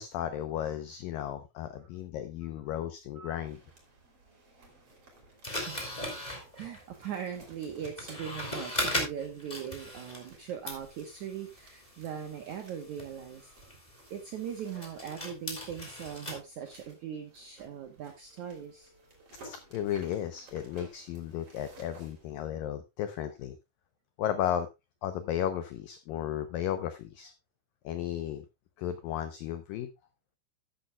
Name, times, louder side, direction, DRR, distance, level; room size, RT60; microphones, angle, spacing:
voice 1, 0.0-3.6 19.4-23.6 24.2-24.7 25.0-27.3 27.8-28.5 28.8-29.9, left 10 dB, 85° left, 10 dB, 2.0 m, -34 dB
sound 1, 3.4-22.3, right 2 dB, 35° right, 3.8 m, -57 dB
sound 2, 5.4-10.4 10.6-16.4, left 1 dB, 10° left, 2.4 m, -39 dB
voice 2, 5.6-6.0 6.3-13.8 14.1-18.9, right 8 dB, 80° right, 6 dB, 1.7 m, -40 dB
13.0 x 10.0 x 2.3 m, 0.24 s
omnidirectional pair, 5.1 m